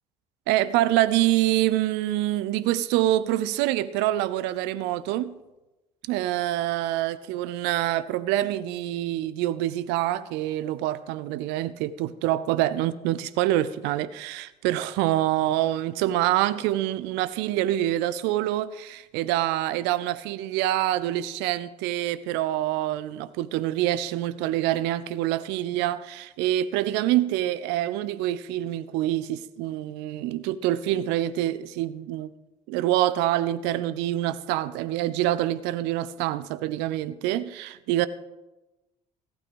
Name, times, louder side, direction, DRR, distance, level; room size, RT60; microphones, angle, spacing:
voice 1, 0.5-5.4 6.1-32.3 32.7-38.1, right 14 dB, 65° right, 0.6 m, -26 dB
15.0 x 9.0 x 5.1 m
hypercardioid pair, 55°, 19 cm